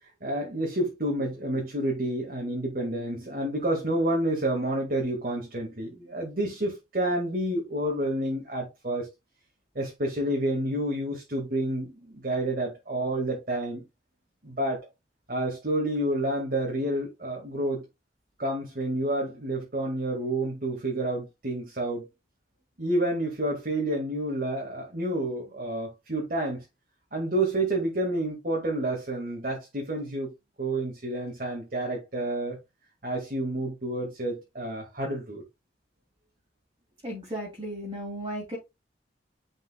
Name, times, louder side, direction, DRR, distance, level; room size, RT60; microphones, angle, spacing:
voice 1, 0.0-9.1 9.8-13.8 14.4-14.9 15.3-17.8 18.4-22.1 22.8-26.6 27.1-30.3 30.6-32.6 33.0-35.4, right 1 dB, 50° right, 2.0 m, -29 dB
voice 2, 37.0-38.6, equal, 25° right, 2.7 m, -35 dB
9.9 x 5.2 x 2.3 m
head